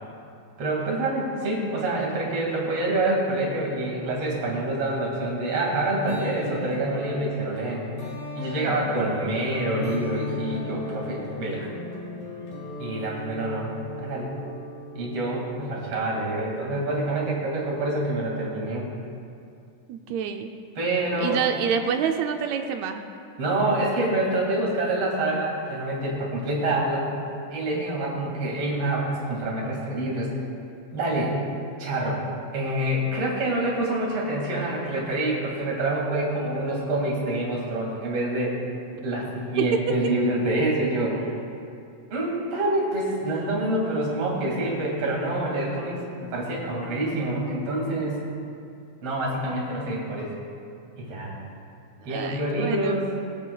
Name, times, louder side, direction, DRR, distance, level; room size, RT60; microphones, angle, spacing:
voice 1, 0.6-7.8 8.3-11.7 12.8-13.7 14.0-14.3 14.9-18.9 20.8-21.4 23.4-27.1 27.5-30.3 30.9-31.4 31.8-32.2 32.5-38.6 39.0-41.3 42.1-48.3 49.0-50.3 51.0-51.4 52.0-53.1, right 1 dB, 55° right, -3 dB, 3.1 m, -26 dB
sound 1, 5.7-16.3, left 2 dB, 85° left, 3.1 m, -36 dB
voice 2, 19.9-20.5 21.2-23.0 52.1-53.0, right 7 dB, 80° right, 5 dB, 1.6 m, -27 dB
22.5 x 8.3 x 2.3 m, 2.5 s
omnidirectional pair, 3.6 m